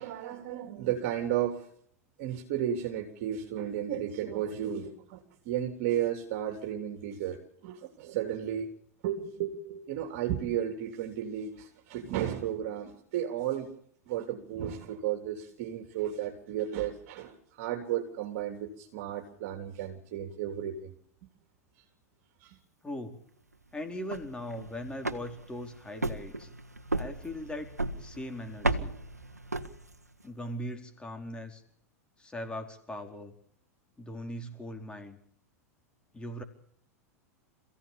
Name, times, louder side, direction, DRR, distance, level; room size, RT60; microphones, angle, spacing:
voice 1, 0.0-1.7 2.2-8.7 9.0-13.7 14.1-21.0 22.4-22.6, right 10 dB, 55° right, 4 dB, 3.4 m, -33 dB
voice 2, 22.8-23.2 23.7-26.5 26.9-27.7 28.0-28.9 30.2-31.6 32.2-33.3 34.0-35.2 36.1-36.4, left 1 dB, 10° left, 5 dB, 4.5 m, -39 dB
sound 1, 23.9-30.2, right 2 dB, 90° right, 1.6 m, -35 dB
28.0 x 16.5 x 7.1 m, 0.69 s
figure-of-eight pair, 90°, 8 cm